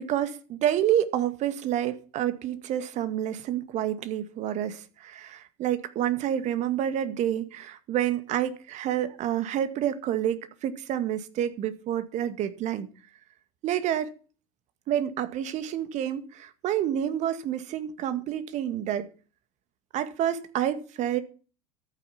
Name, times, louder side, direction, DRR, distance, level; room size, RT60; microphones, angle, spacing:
voice 1, 0.0-12.9 13.6-14.1 14.9-19.1 19.9-21.2, right 11 dB, 45° right, 2.0 m, -28 dB
14.0 x 9.2 x 5.9 m
figure-of-eight pair, 80°, 17 cm